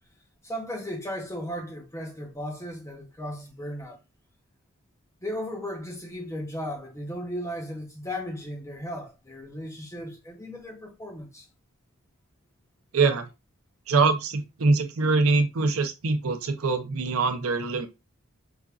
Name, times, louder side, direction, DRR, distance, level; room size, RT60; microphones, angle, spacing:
voice 1, 0.4-4.0 5.2-11.5, equal, 15° left, 0.7 m, -36 dB
voice 2, 12.9-13.3 13.9-17.9, right 3 dB, 75° right, 0.6 m, -23 dB
5.0 x 2.4 x 2.3 m
head